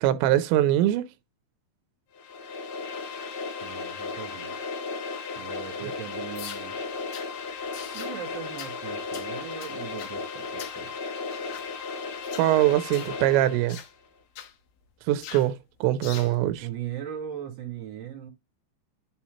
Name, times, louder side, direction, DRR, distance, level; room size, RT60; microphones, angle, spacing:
voice 1, 0.0-1.0 5.8-5.9 12.4-13.8 15.1-16.7, right 13 dB, 90° right, 2.9 m, -23 dB
sound 1, 2.1-13.8, left 4 dB, 90° left, 3.7 m, -35 dB
voice 2, 3.6-4.6 5.4-6.8 7.9-10.9 16.6-18.3, right 9 dB, 45° right, 3.8 m, -39 dB
sound 2, 6.4-6.7 7.1-7.3 7.7-8.2 8.6-8.8 9.1-9.3 9.6-10.2 10.6-10.8 11.3-11.7 12.2-12.5 12.9-13.2 13.7-13.9 14.4-14.5 15.2-15.5 16.0-16.3, left 10 dB, 70° left, 2.6 m, -42 dB
11.0 x 4.3 x 2.8 m
omnidirectional pair, 5.0 m